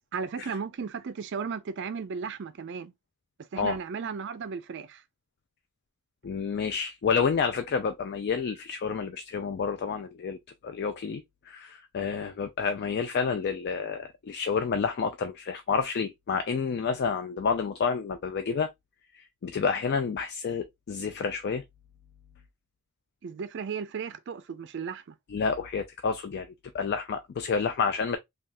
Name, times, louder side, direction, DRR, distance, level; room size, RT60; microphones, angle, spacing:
voice 1, 0.1-2.9 3.5-5.0 23.2-25.1, right 6 dB, 50° right, 0.4 m, -35 dB
voice 2, 6.2-18.7 19.1-21.6 25.3-28.2, left 5 dB, 45° left, 0.3 m, -29 dB
3.4 x 2.3 x 2.5 m
head